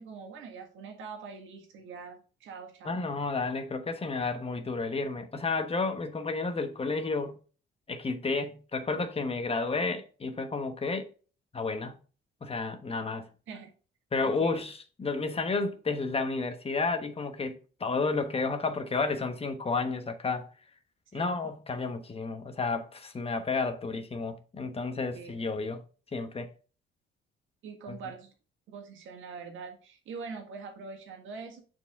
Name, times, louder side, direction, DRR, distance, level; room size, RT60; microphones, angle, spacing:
voice 1, 0.0-3.1 13.5-13.7 14.2-14.6 21.1-21.5 25.1-25.4 27.6-28.3 28.7-31.6, right 5 dB, 80° right, 1.7 m, -43 dB
voice 2, 2.8-7.4 7.9-11.1 11.5-12.0 12.4-13.3 14.1-20.5 21.1-25.8 26.1-26.5, left 3 dB, 30° left, 1.1 m, -31 dB
6.9 x 4.6 x 3.6 m
cardioid pair, 90°, 20 cm